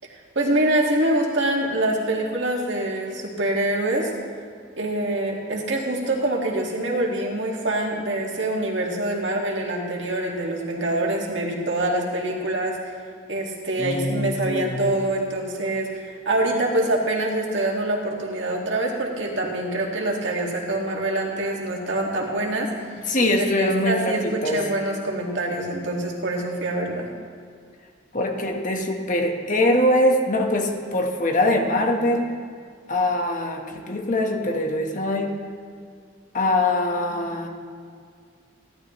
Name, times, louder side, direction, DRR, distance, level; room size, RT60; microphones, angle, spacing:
voice 1, 0.1-4.1 4.8-12.8 13.3-22.9 23.2-27.1, right 1 dB, 65° right, -1 dB, 2.0 m, -25 dB
voice 2, 13.8-14.9 23.1-24.6 28.1-32.3 32.9-35.3 36.3-37.5, left 1 dB, 40° left, 2 dB, 1.3 m, -23 dB
16.0 x 12.5 x 3.2 m, 2.1 s
head